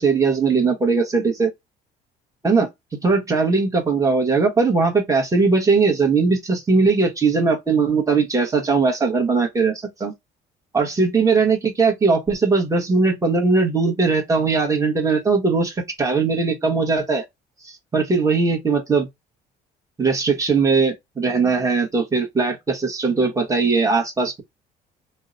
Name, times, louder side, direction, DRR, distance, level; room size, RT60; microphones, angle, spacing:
voice 1, 0.0-1.5 2.4-2.7 3.0-10.1 10.7-17.2 17.6-19.1 20.0-24.4, right 4 dB, 20° right, 1.1 m, -19 dB
2.8 x 2.1 x 3.8 m
cardioid pair, 110°, 17 cm